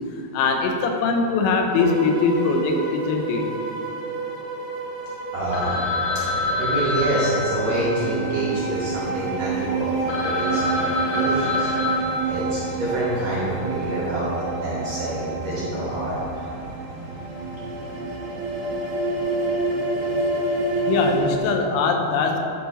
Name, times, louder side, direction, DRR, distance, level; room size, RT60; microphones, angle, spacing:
voice 1, 0.3-3.4 20.9-22.4, left 4 dB, 90° left, 3 dB, 2.6 m, -21 dB
sound 1, 1.8-21.2, right 3 dB, 85° right, 3.1 m, -29 dB
sound 2, 5.3-21.6, equal, 50° left, 0.5 m, -40 dB
voice 2, 5.3-5.8 6.2-11.7 12.0-16.5, right 1 dB, 65° right, -8 dB, 1.7 m, -27 dB
Telephone, 5.5-9.3 9.8-9.9 10.1-13.0, left 2 dB, 75° left, 1.9 m, -27 dB
10.5 x 4.8 x 4.1 m, 2.7 s
omnidirectional pair, 4.4 m